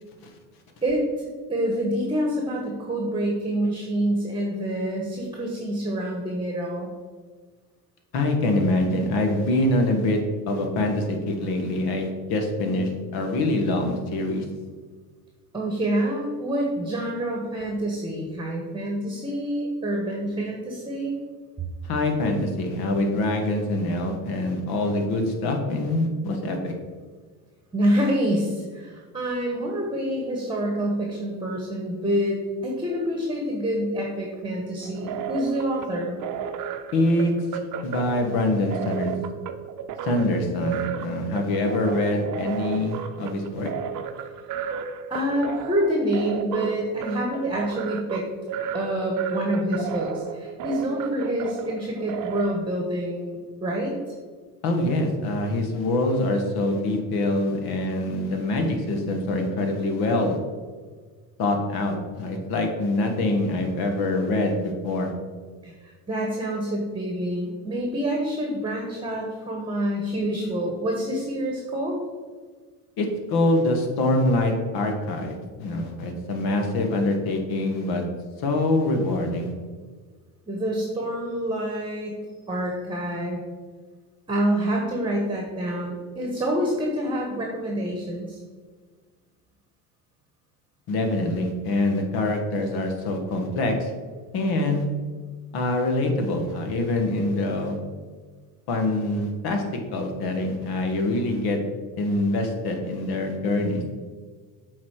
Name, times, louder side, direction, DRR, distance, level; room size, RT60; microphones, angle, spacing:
voice 1, 0.8-6.9 15.5-21.2 27.7-36.2 44.2-44.3 45.1-48.2 48.7-53.9 65.6-72.0 80.5-82.2 82.5-83.4 84.3-88.4, right 1 dB, 10° right, 0 dB, 1.3 m, -27 dB
voice 2, 8.1-10.2 10.5-14.4 21.8-26.7 36.9-37.3 37.8-39.2 40.0-43.7 54.6-60.4 61.4-65.1 73.0-78.0 78.4-79.5 90.9-93.9 94.3-94.9 95.5-97.7 98.7-99.6 99.9-101.6 102.0-103.8, left 2 dB, 60° left, 4 dB, 1.5 m, -24 dB
sound 1, 34.8-52.6, right 7 dB, 50° right, 0.7 m, -33 dB
7.2 x 4.1 x 4.8 m, 1.5 s
supercardioid pair, 105°, 41 cm